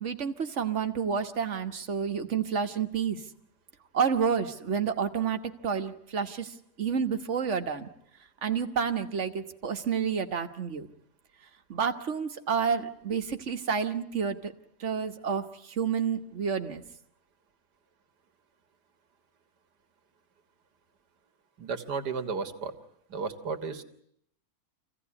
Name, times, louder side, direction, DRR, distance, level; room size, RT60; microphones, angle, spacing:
voice 1, 0.0-3.2 3.9-6.5 6.8-7.9 8.4-10.9 11.7-14.5 14.8-15.4 15.8-16.8, right 6 dB, 50° right, 7 dB, 1.5 m, -29 dB
voice 2, 21.6-22.7 23.1-23.8, right 5 dB, 85° right, 8 dB, 2.1 m, -33 dB
26.0 x 16.0 x 9.8 m, 0.72 s
omnidirectional pair, 1.7 m